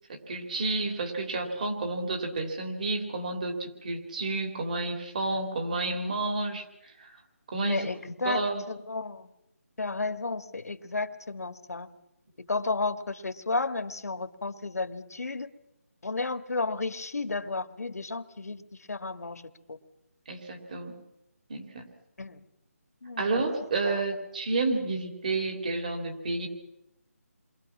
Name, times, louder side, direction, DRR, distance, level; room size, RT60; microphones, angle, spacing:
voice 1, 0.1-7.1 7.5-7.9 8.2-8.7 20.3-21.0 21.5-21.9 23.2-26.5, right 3 dB, 30° right, 4 dB, 3.3 m, -30 dB
voice 2, 7.6-9.3 9.8-11.9 12.5-15.5 16.0-18.6 18.9-19.4 19.7-19.8 22.2-22.4 23.0-23.3 23.9-24.0, left 3 dB, 75° left, 10 dB, 1.8 m, -32 dB
29.0 x 23.0 x 6.1 m, 0.87 s
figure-of-eight pair, 175°, 8 cm